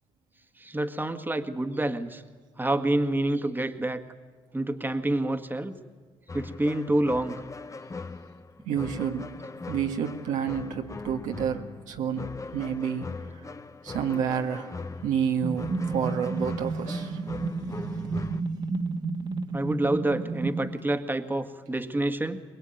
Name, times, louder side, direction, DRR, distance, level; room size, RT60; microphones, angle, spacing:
voice 1, 0.6-2.2 2.6-4.0 4.5-5.8 6.3-7.4 19.5-22.4, right 1 dB, 15° right, 1.8 m, -27 dB
sound 1, 6.3-18.4, left 3 dB, 25° left, 0.9 m, -40 dB
voice 2, 8.6-9.3 9.7-13.5 13.8-17.2 17.7-18.3, right 8 dB, 70° right, 1.7 m, -30 dB
sound 2, 15.4-20.7, right 3 dB, 35° right, 1.7 m, -31 dB
22.5 x 21.0 x 9.2 m
hypercardioid pair, 50°, 13 cm